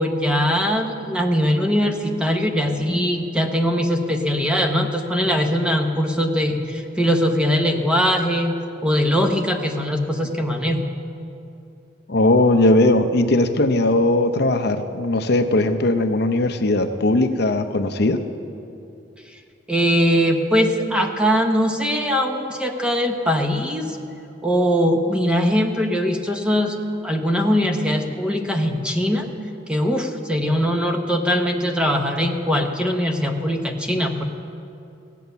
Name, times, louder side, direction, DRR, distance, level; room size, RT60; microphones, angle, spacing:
voice 1, 0.0-8.5 8.8-10.9 19.7-24.0 24.4-29.3 29.7-34.3, equal, 5° right, 3 dB, 0.9 m, -21 dB
voice 2, 12.1-18.2, left 2 dB, 60° left, 7 dB, 0.7 m, -19 dB
16.0 x 9.3 x 6.9 m, 2.7 s
head